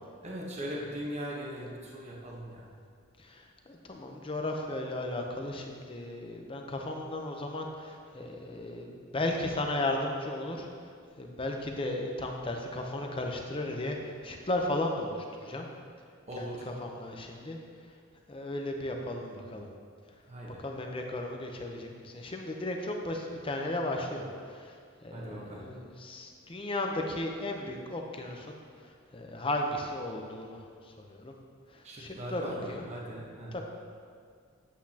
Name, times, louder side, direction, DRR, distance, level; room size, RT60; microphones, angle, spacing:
voice 1, 0.2-2.7 16.3-16.6 20.3-20.6 25.1-25.7 31.8-33.6, equal, 35° right, -3 dB, 1.0 m, -39 dB
voice 2, 3.2-15.7 16.4-17.6 17.9-18.0 18.3-19.7 20.6-31.3 31.7-32.9 33.5-33.6, left 1 dB, 25° left, 2 dB, 0.7 m, -35 dB
8.3 x 8.2 x 2.8 m, 2.1 s
head